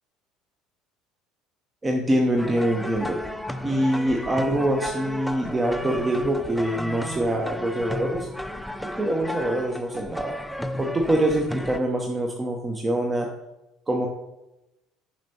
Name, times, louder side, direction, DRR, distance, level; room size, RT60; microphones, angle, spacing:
voice 1, 1.8-3.2 3.6-8.3 9.0-10.4 10.8-13.3 13.9-14.1, right 1 dB, 20° right, 1 dB, 0.8 m, -24 dB
sound 1, 2.4-11.8, left 1 dB, ahead, 0.4 m, -33 dB
7.4 x 5.2 x 2.8 m, 0.94 s
figure-of-eight pair, 60°, 0 cm